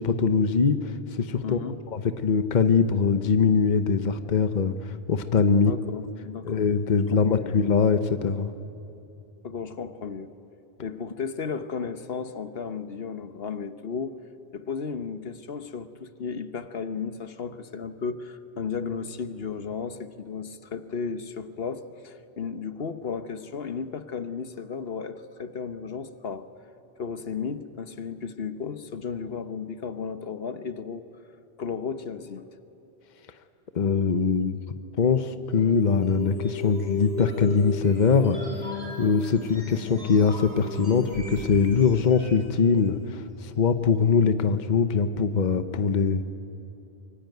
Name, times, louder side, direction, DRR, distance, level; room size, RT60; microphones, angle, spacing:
voice 1, 0.0-1.6 1.9-5.7 6.4-8.5 33.7-34.6 35.0-38.4 39.0-46.2, left 5 dB, 50° left, 9 dB, 1.0 m, -22 dB
voice 2, 1.4-1.8 5.5-6.7 7.1-7.6 9.4-10.3 10.8-14.2 14.5-26.5 27.0-31.0 31.6-32.4, left 5 dB, 70° left, 10 dB, 1.2 m, -34 dB
sound 1, 35.3-42.5, left 4 dB, 35° right, 8.2 m, -36 dB
25.5 x 23.5 x 9.3 m, 2.9 s
omnidirectional pair, 1.0 m